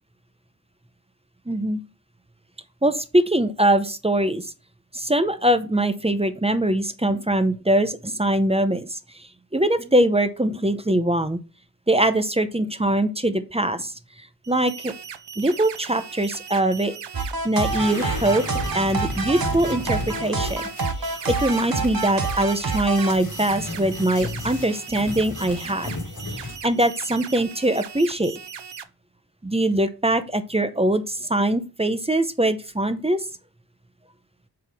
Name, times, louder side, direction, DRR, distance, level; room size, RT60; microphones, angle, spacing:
voice 1, 1.5-1.8 2.8-4.5 4.9-11.4 11.9-13.9 14.5-14.9 15.4-16.9 17.4-18.4 18.7-20.6 21.0-25.9 26.3-28.4 29.4-33.3, right 1 dB, 15° right, 10 dB, 0.7 m, -22 dB
sound 1, 14.4-28.8, right 7 dB, 90° right, 0.6 m, -39 dB
sound 2, 17.1-23.1, right 4 dB, 60° right, 0.9 m, -27 dB
sound 3, 17.6-26.7, left 2 dB, 60° left, 1.9 m, -35 dB
7.6 x 4.1 x 3.5 m, 0.31 s
wide cardioid pair, 55°, 41 cm